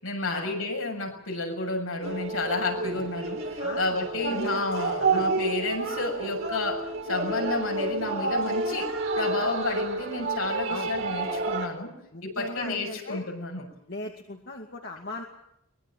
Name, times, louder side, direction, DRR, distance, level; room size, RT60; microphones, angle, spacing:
voice 1, 0.0-11.9 12.2-13.7, left 2 dB, 70° left, 2 dB, 7.1 m, -31 dB
sound 1, 2.0-11.7, right 3 dB, 65° right, 4.6 m, -30 dB
voice 2, 3.6-4.6 5.0-5.2 10.7-10.9 12.1-13.2 13.9-15.2, left 2 dB, 50° left, 1 dB, 2.2 m, -38 dB
24.0 x 21.0 x 7.6 m, 0.77 s
head